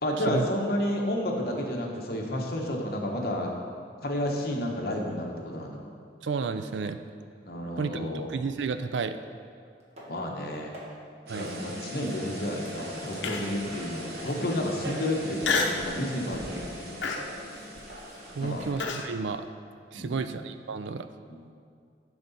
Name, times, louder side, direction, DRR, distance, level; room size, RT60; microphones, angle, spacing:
voice 1, 0.0-3.5 4.0-5.8 7.4-8.3 10.0-10.8 11.3-17.2 18.4-18.7 19.9-20.3 21.3-21.4, left 1 dB, 55° left, 0 dB, 1.0 m, -31 dB
voice 2, 6.2-7.0 7.8-9.2 11.3-11.5 18.3-19.5 19.9-21.1, right 5 dB, 85° right, 10 dB, 0.4 m, -32 dB
sound 1, 9.8-10.1 10.5-10.9 11.4-11.6 12.0-15.9 16.3-16.5 16.9-18.7, equal, 35° right, 1.5 m, -50 dB
sound 2, 11.3-18.7, equal, 60° right, 1.1 m, -40 dB
Human voice, 13.2-13.7 14.2-14.3 15.4-15.9 16.3-16.6 17.0-19.1, left 4 dB, 85° left, 0.7 m, -29 dB
10.5 x 5.0 x 4.1 m, 2.2 s
head